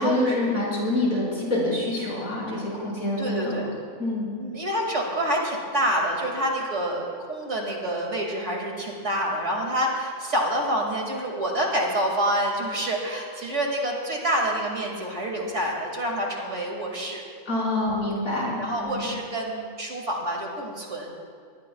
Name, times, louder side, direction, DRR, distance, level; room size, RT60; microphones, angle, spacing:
voice 1, 0.0-3.7 4.0-4.3 17.5-19.1, left 1 dB, 65° left, -6 dB, 5.3 m, -26 dB
voice 2, 3.2-3.7 4.4-17.2 17.8-18.0 18.6-21.3, right 1 dB, 50° right, 0 dB, 2.6 m, -27 dB
20.5 x 20.0 x 2.3 m, 2.3 s
omnidirectional pair, 1.6 m